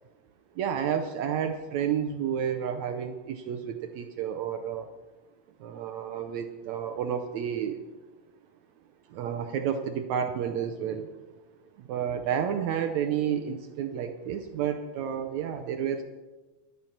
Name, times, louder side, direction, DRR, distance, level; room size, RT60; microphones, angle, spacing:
voice 1, 0.6-4.9 5.6-7.8 9.1-11.1 11.8-16.0, right 8 dB, 75° right, 7 dB, 1.7 m, -30 dB
12.5 x 12.5 x 5.8 m, 1.2 s
omnidirectional pair, 3.8 m